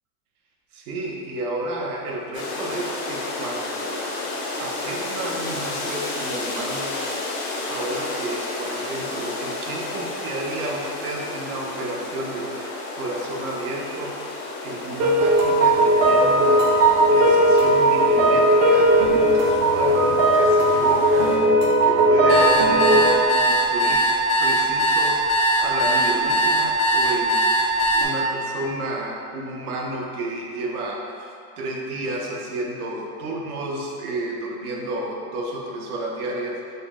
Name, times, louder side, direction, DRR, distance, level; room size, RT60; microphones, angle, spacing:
voice 1, 0.7-4.2 4.6-7.2 7.7-24.1 24.4-36.6, right 2 dB, 85° right, -1 dB, 0.8 m, -32 dB
sound 1, 2.3-21.4, left 2 dB, 35° left, 0.4 m, -32 dB
sound 2, 15.0-23.1, right 1 dB, 30° right, 0.4 m, -17 dB
sound 3, 22.3-28.0, equal, 85° left, 1.3 m, -20 dB
4.1 x 2.1 x 3.5 m, 2.4 s
supercardioid pair, 145°, 43 cm